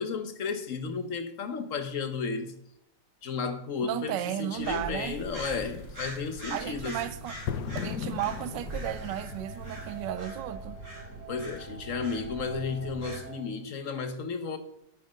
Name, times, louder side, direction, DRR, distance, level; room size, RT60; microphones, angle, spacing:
voice 1, 0.0-2.5 3.2-7.0 11.3-14.6, left 5 dB, 50° left, 1.4 m, -33 dB
voice 2, 3.8-5.2 6.5-7.3 7.7-10.8, right 12 dB, 90° right, 1.3 m, -34 dB
sound 1, 4.5-13.2, right 2 dB, 45° right, 5.0 m, -42 dB
sound 2, 5.0-10.1, left 9 dB, 70° left, 1.3 m, -40 dB
sound 3, 8.5-13.5, right 4 dB, 25° right, 1.7 m, -47 dB
10.0 x 9.8 x 5.2 m
omnidirectional pair, 1.9 m